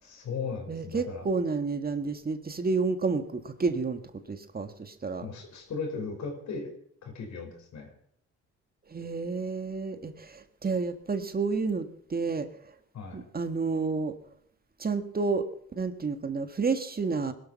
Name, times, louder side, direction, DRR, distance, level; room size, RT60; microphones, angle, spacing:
voice 1, 0.0-1.3 5.2-6.7 7.0-7.9 12.9-13.2, left 5 dB, 65° left, 4 dB, 5.4 m, -37 dB
voice 2, 0.7-5.2 8.9-12.7 13.1-14.1 14.8-17.3, right 4 dB, 30° right, 8 dB, 1.7 m, -30 dB
21.0 x 12.5 x 5.6 m, 0.65 s
cardioid pair, 90°, 30 cm